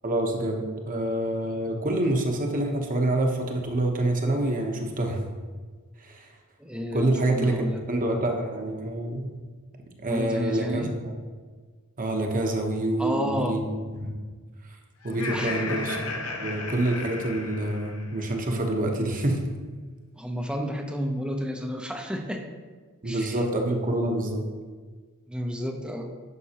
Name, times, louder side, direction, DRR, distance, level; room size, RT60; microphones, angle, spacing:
voice 1, 0.0-5.2 6.0-6.3 6.9-9.3 10.0-10.9 12.0-14.1 15.0-16.0 16.4-19.4 23.0-24.4, right 1 dB, 40° right, 2 dB, 1.0 m, -27 dB
voice 2, 6.6-7.8 10.1-10.9 13.0-13.6 15.3-15.9 20.2-22.4 23.0-23.4 25.3-26.1, equal, 5° right, 3 dB, 0.7 m, -31 dB
Laughter, 15.0-18.3, left 3 dB, 75° left, 1.0 m, -34 dB
11.0 x 5.9 x 2.9 m, 1.5 s
head